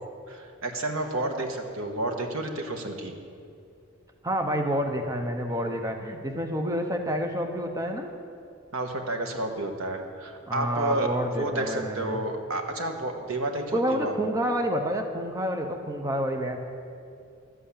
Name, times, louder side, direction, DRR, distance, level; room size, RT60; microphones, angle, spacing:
voice 1, 0.3-3.1 8.7-11.1 11.3-14.1, right 1 dB, 70° right, 4 dB, 1.4 m, -30 dB
voice 2, 4.2-8.1 10.5-12.2 13.7-16.6, equal, 15° right, 3 dB, 0.8 m, -28 dB
12.5 x 7.9 x 8.6 m, 2.5 s
head